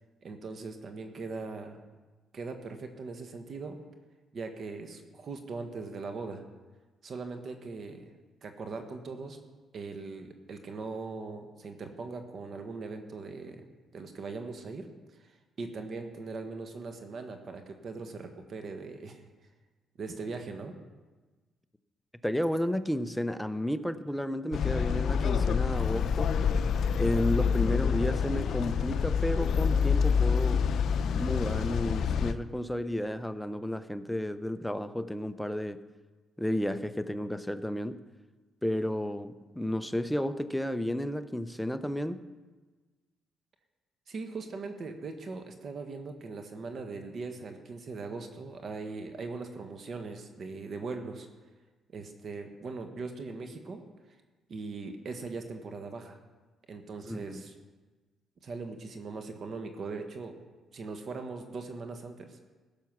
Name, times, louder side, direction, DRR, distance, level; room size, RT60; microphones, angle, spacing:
voice 1, 0.2-1.8 2.3-3.8 4.3-6.4 7.0-8.1 8.4-9.4 9.7-13.6 13.9-14.9 15.2-15.3 15.6-19.2 20.0-20.8 44.1-51.3 51.9-53.8 54.5-56.2 56.7-57.5 58.4-60.4 60.7-62.4, right 4 dB, 50° right, 6 dB, 1.3 m, -40 dB
voice 2, 22.2-26.3 27.0-30.7 31.1-35.8 36.4-38.0 38.6-42.2 57.0-57.4, left 1 dB, 5° left, 11 dB, 0.6 m, -32 dB
sound 1, 24.5-32.3, left 6 dB, 65° left, 0.6 m, -27 dB
16.0 x 7.0 x 6.0 m, 1.3 s
cardioid pair, 90°, 0 cm